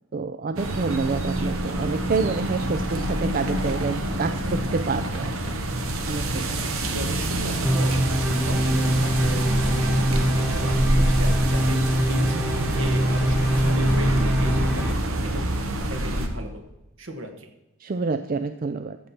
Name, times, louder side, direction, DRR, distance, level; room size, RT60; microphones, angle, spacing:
voice 1, 0.1-5.6 6.1-6.6 17.8-19.0, right 4 dB, 40° right, 10 dB, 0.4 m, -28 dB
sound 1, 0.6-16.3, right 1 dB, 85° right, 1.3 m, -26 dB
voice 2, 6.9-16.6 17.0-17.5, equal, 70° right, 5 dB, 1.5 m, -36 dB
sound 2, 7.6-14.9, equal, 10° right, 1.2 m, -24 dB
14.0 x 7.3 x 4.4 m, 0.99 s
head